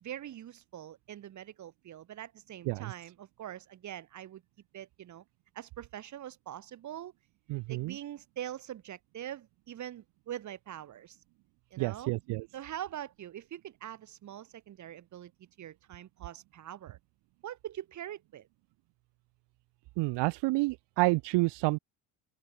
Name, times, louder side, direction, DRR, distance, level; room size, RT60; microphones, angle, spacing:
voice 1, 0.0-4.4 4.7-5.2 5.5-7.1 7.7-11.2 11.7-12.1 12.5-15.3 15.6-17.0 17.4-18.5, right 11 dB, 45° right, 1.5 m, -43 dB
voice 2, 7.5-8.0 11.8-12.5 20.0-21.8, right 23 dB, 75° right, 0.6 m, -29 dB
open air
cardioid pair, 145°, 42 cm